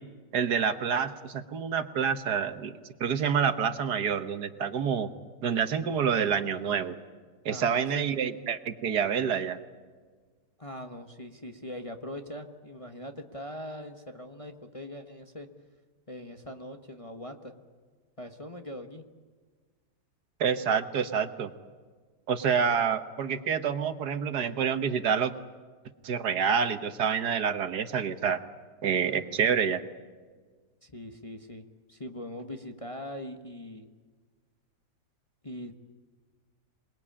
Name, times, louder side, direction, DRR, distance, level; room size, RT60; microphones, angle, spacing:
voice 1, 0.3-2.7 3.0-5.1 5.4-7.0 7.5-9.6 20.4-21.5 22.3-25.3 26.0-28.4 28.8-29.8, right 7 dB, 70° right, 10 dB, 1.7 m, -27 dB
voice 2, 7.5-8.1 10.6-15.5 16.1-17.5 18.2-19.1 30.8-33.9 35.4-35.7, left 1 dB, 20° left, 5 dB, 1.2 m, -41 dB
27.0 x 21.0 x 8.7 m, 1.5 s
omnidirectional pair, 1.9 m